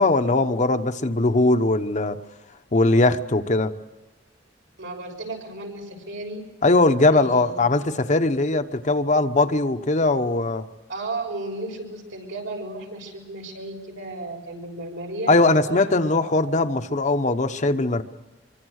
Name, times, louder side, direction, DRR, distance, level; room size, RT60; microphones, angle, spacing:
voice 1, 0.0-2.2 2.7-3.7 6.6-10.6 15.3-18.0, left 2 dB, 40° left, 8 dB, 1.0 m, -20 dB
voice 2, 4.8-6.4 7.1-7.7 10.9-16.1, right 2 dB, 85° right, 2 dB, 6.5 m, -34 dB
25.0 x 24.0 x 6.5 m, 1.2 s
head